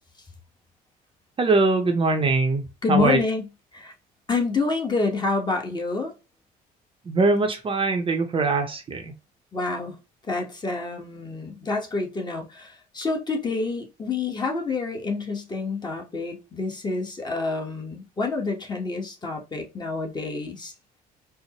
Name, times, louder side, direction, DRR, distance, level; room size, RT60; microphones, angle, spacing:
voice 1, 1.4-3.2 7.1-9.1, right 3 dB, 30° right, 0.7 m, -22 dB
voice 2, 2.8-3.4 3.7-3.9 4.3-6.1 9.5-9.9 10.3-20.7, left 3 dB, 25° left, 1.1 m, -28 dB
4.3 x 2.1 x 2.9 m
cardioid pair, 110°, 17 cm